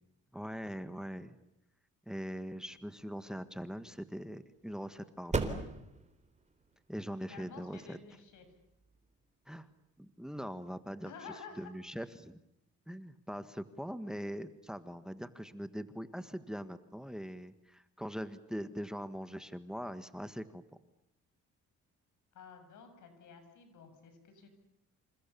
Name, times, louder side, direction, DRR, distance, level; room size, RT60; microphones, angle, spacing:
voice 1, 0.3-1.3 2.0-5.6 6.9-8.0 9.4-9.7 10.0-11.1 11.6-12.4 12.9-20.6, equal, ahead, 11 dB, 1.7 m, -42 dB
sound 1, 2.8-10.0, right 3 dB, 25° right, 3.8 m, -42 dB
voice 2, 7.2-8.5 11.0-11.7 22.3-24.5, left 5 dB, 80° left, 8 dB, 7.6 m, -51 dB
28.0 x 28.0 x 7.1 m, 0.83 s
cardioid pair, 90°, 30 cm